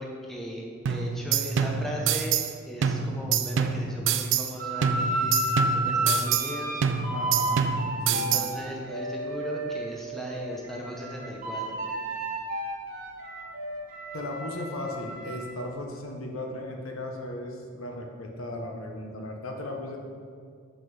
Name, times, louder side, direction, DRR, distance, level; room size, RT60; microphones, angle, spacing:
voice 1, 0.0-2.4 2.6-5.3 5.7-6.8 8.1-11.8, equal, ahead, -2 dB, 0.8 m, -37 dB
sound 1, 0.9-2.5 2.8-4.5 4.8-6.5 6.8-8.5, right 6 dB, 60° right, 0.3 m, -27 dB
sound 2, 4.6-9.8 10.3-15.6, right 1 dB, 40° right, 1.1 m, -32 dB
voice 2, 7.1-7.6 8.1-8.4 14.1-20.0, left 1 dB, 85° left, 2 dB, 0.9 m, -36 dB
5.7 x 5.1 x 4.7 m, 2.2 s
head